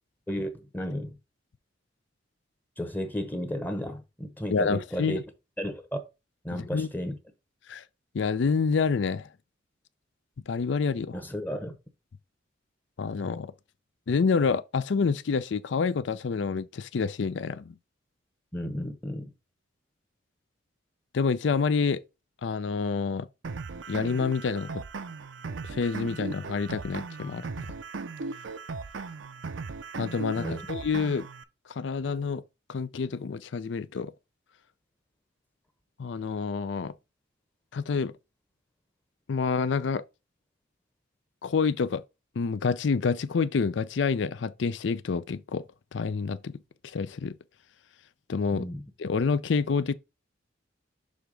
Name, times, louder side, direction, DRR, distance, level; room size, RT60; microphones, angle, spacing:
voice 1, 0.3-1.2 2.8-5.2 5.6-6.0 6.4-7.2 11.1-11.7 18.5-19.3 30.3-30.6 48.5-48.8, equal, 10° left, 0.9 m, -33 dB
voice 2, 4.5-5.2 6.5-6.9 7.7-7.8 8.1-9.3 10.5-11.2 13.0-13.5 14.1-17.7 21.1-22.0 22.4-23.3 23.9-24.7 25.6-27.7 30.0-31.3 31.7-32.4 32.7-34.1 36.0-36.9 37.7-38.1 39.3-40.0 41.4-42.0 42.4-45.6 45.9-46.5 46.8-47.4 48.3-48.7 49.0-49.9, left 5 dB, 65° left, 0.4 m, -28 dB
sound 1, 23.4-31.4, right 4 dB, 70° right, 0.6 m, -37 dB
6.4 x 3.4 x 5.1 m
head